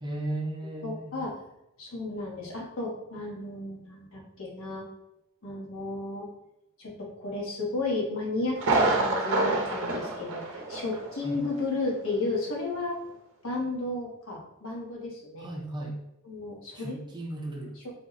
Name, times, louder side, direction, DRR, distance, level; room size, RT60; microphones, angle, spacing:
voice 1, 0.0-1.2 11.2-11.4 15.4-16.0 16.7-17.8, right 1 dB, 20° right, 0 dB, 0.5 m, -35 dB
voice 2, 0.8-1.4 1.8-4.9 5.4-6.3 6.8-13.0 13.4-15.5 16.2-17.0 17.8-17.9, left 2 dB, 65° left, -3 dB, 1.0 m, -33 dB
Thunder, 8.6-11.2 11.4-11.5 12.1-12.2, right 2 dB, 65° right, 0.6 m, -27 dB
3.4 x 2.1 x 3.9 m, 0.84 s
head